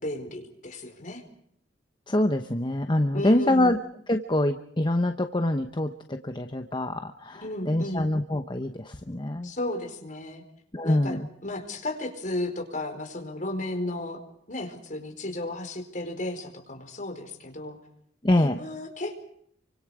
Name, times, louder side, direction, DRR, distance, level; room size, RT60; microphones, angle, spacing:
voice 1, 0.0-1.2 3.1-3.7 7.3-8.1 9.4-10.4 10.8-11.2 11.4-14.2 14.5-17.8 18.4-19.3, left 1 dB, 45° left, 3 dB, 4.6 m, -34 dB
voice 2, 2.1-3.8 4.1-9.5 10.7-11.3 18.2-18.6, left 1 dB, 25° left, 6 dB, 1.0 m, -25 dB
29.5 x 25.0 x 5.0 m, 0.68 s
head